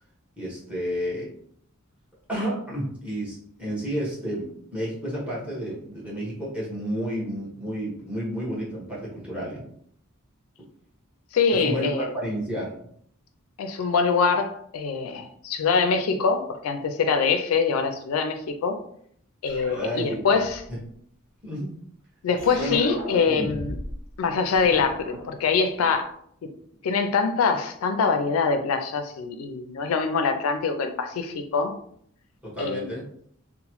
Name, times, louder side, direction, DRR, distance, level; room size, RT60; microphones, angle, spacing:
voice 1, 0.4-1.3 2.3-9.7 11.6-12.7 19.7-20.2 20.7-20.8 21.4-21.7 22.6-22.8 32.4-33.0, equal, 5° right, -5 dB, 1.1 m, -31 dB
voice 2, 11.3-12.1 13.6-18.8 19.4-20.6 22.2-23.8 24.2-26.1 26.4-26.5 26.8-31.7 32.6-33.0, left 5 dB, 85° left, 7 dB, 0.3 m, -24 dB
sound 1, 19.4-20.8 22.4-24.0 24.3-25.9, left 1 dB, 40° right, 1.2 m, -37 dB
3.0 x 2.0 x 3.0 m, 0.65 s
head